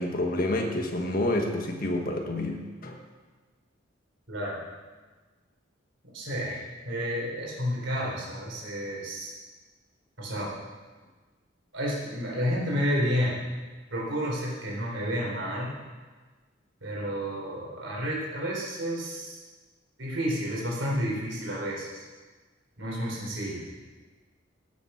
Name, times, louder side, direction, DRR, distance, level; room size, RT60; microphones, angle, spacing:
voice 1, 0.0-3.0, left 1 dB, 50° left, 2 dB, 1.3 m, -28 dB
voice 2, 4.3-4.6 6.1-9.3 10.2-10.5 11.7-13.4 13.9-15.8 16.8-19.4 20.0-22.0 22.8-23.6, equal, 70° right, -4 dB, 4.2 m, -31 dB
17.5 x 7.2 x 5.8 m, 1.3 s
head